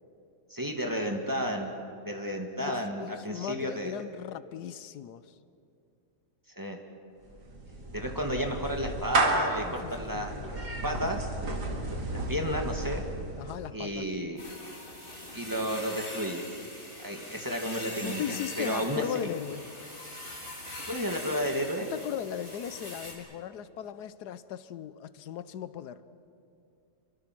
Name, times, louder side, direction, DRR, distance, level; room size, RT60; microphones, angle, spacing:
voice 1, 0.5-1.7 2.1-3.9 6.6-6.8 7.9-11.3 12.1-13.0 13.7-14.4 15.3-16.4 17.0-19.3 20.9-21.9, equal, 10° right, 2 dB, 2.0 m, -32 dB
voice 2, 2.6-5.3 9.6-10.5 13.4-14.1 18.0-19.7 21.8-26.0, left 9 dB, 80° left, 14 dB, 1.3 m, -38 dB
Clapping / Meow, 7.2-13.7, right 2 dB, 85° right, 3.0 m, -32 dB
sound 1, 14.4-23.1, left 1 dB, 30° left, 4.1 m, -42 dB
27.0 x 23.5 x 6.1 m, 2.5 s
omnidirectional pair, 1.7 m